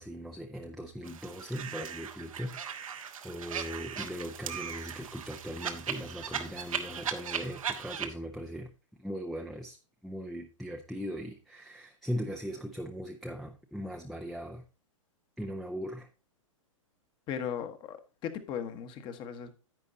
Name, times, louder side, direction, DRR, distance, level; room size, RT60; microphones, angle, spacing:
voice 1, 0.0-8.7 9.0-9.8 10.0-14.6 15.4-16.1, equal, ahead, 0.7 m, -39 dB
sound 1, 1.0-8.1, right 7 dB, 85° right, 1.4 m, -38 dB
voice 2, 17.3-19.5, left 8 dB, 30° left, 1.3 m, -37 dB
10.5 x 8.4 x 2.7 m
hypercardioid pair, 135°, 17 cm